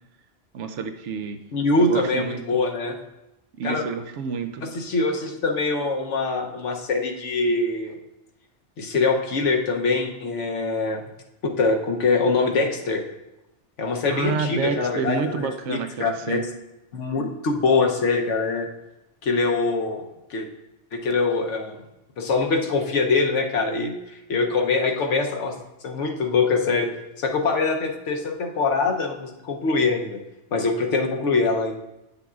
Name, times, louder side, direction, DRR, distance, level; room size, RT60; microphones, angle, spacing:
voice 1, 0.5-1.4 1.8-2.6 3.6-4.7 14.1-16.4, right 5 dB, 80° right, 8 dB, 0.9 m, -29 dB
voice 2, 1.5-3.0 3.6-3.8 4.6-7.9 8.8-11.0 11.4-13.0 13.8-16.4 16.9-18.7 19.2-20.0 20.3-20.5 20.9-21.8 22.2-25.6 25.8-26.9 27.2-30.2 30.5-31.7, left 3 dB, 80° left, 3 dB, 1.1 m, -23 dB
9.1 x 6.9 x 2.4 m, 0.93 s
omnidirectional pair, 1.2 m